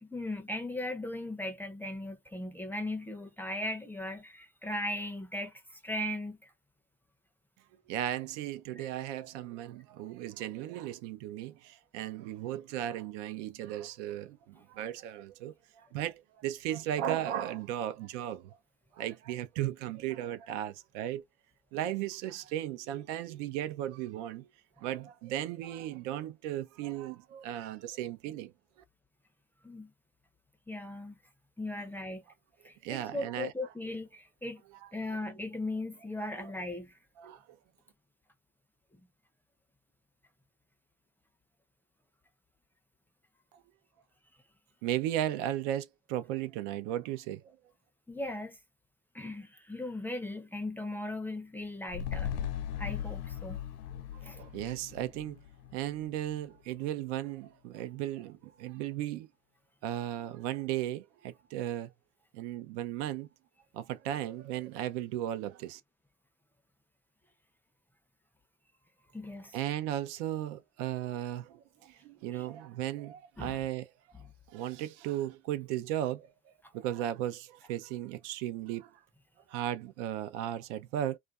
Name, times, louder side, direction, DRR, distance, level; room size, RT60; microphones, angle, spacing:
voice 1, 0.0-6.4 8.8-8.9 29.6-29.9 30.7-31.2 31.6-32.2 32.6-34.6 34.9-36.9 48.1-48.6 49.1-52.3 52.8-53.6 54.2-54.4 69.1-69.6 72.3-72.5 73.4-73.6, left 1 dB, 5° left, 0.5 m, -38 dB
voice 2, 7.9-14.4 14.7-18.5 19.0-21.2 21.7-24.5 24.8-28.5 32.8-33.5 36.4-36.5 37.2-37.4 44.8-47.4 54.1-55.4 55.7-59.3 59.8-61.9 62.3-63.3 63.7-65.8 69.5-73.9 74.5-76.3 76.7-78.9 79.5-81.2, right 12 dB, 70° right, 0.6 m, -36 dB
sound 1, 51.9-56.4 56.7-56.8, left 9 dB, 65° left, 0.5 m, -38 dB
2.5 x 2.2 x 2.3 m
supercardioid pair, 95°, 37 cm